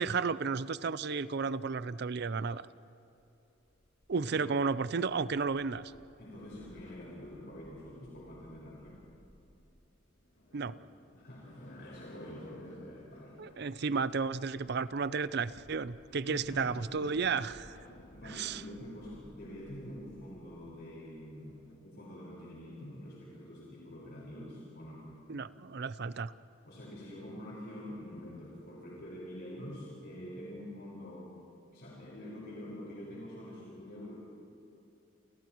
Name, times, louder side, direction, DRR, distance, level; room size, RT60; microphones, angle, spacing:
voice 1, 0.0-2.7 4.1-5.9 10.5-10.7 13.4-17.8 18.4-18.6 25.3-26.3, right 5 dB, 60° right, 16 dB, 0.5 m, -33 dB
sound 1, 3.1-21.8, left 1 dB, 75° left, 2.6 m, -58 dB
voice 2, 4.2-4.5 6.2-9.1 11.2-13.4 16.3-17.4 17.9-25.1 26.7-31.3 31.7-34.2, left 1 dB, 60° left, -6 dB, 5.1 m, -46 dB
29.5 x 28.5 x 3.1 m, 2.9 s
head